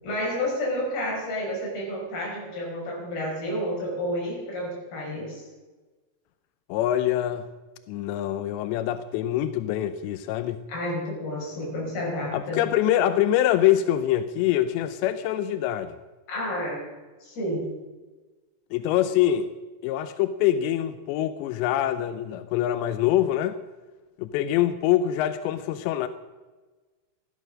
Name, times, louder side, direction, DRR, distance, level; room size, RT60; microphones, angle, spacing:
voice 1, 0.0-5.4 10.7-12.6 16.3-16.9 17.2-17.7, left 1 dB, 50° left, 7.0 m, -30 dB
voice 2, 6.7-7.5 7.9-10.6 12.3-16.0 18.7-19.5 19.8-23.6 24.2-26.1, left 12 dB, 80° left, 2.6 m, -24 dB
15.5 x 14.0 x 6.3 m
omnidirectional pair, 5.8 m